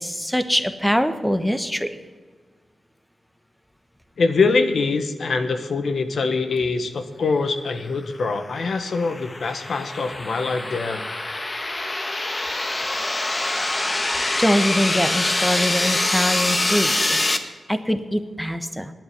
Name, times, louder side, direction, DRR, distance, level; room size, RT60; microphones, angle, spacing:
voice 1, 0.0-2.0 14.4-17.2 17.7-18.9, equal, 5° left, 11 dB, 1.1 m, -23 dB
voice 2, 4.2-11.0, left 4 dB, 75° left, 9 dB, 1.2 m, -23 dB
sound 1, 8.4-17.4, left 2 dB, 30° left, 1.3 m, -25 dB
10.5 x 8.7 x 9.4 m, 1.5 s
cardioid pair, 60°, 0 cm